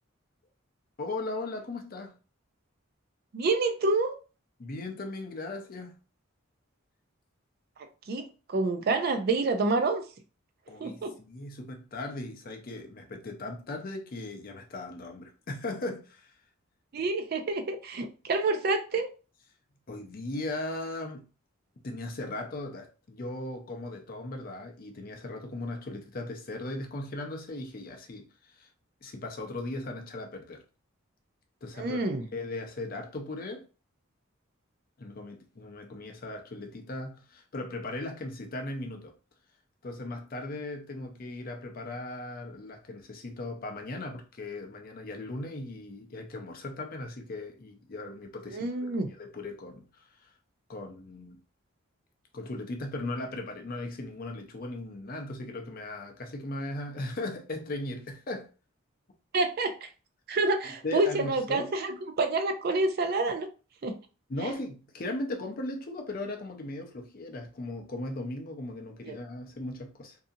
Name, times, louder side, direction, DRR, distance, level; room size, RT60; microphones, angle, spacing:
voice 1, 1.0-2.1 4.6-5.9 10.7-16.3 19.9-21.3 21.8-28.7 29.0-30.6 31.6-32.0 32.3-33.6 35.0-39.1 39.8-50.3 50.7-51.4 52.3-58.5 60.8-61.7 64.3-70.2, left 2 dB, 45° left, 0.5 m, -38 dB
voice 2, 3.3-4.2 8.1-10.0 10.8-11.2 16.9-19.1 31.8-32.3 48.5-49.1 59.3-59.9 60.3-63.5 63.8-64.0 64.4-64.5 69.1-69.2, right 3 dB, 50° right, 0.4 m, -28 dB
2.7 x 2.4 x 2.6 m
head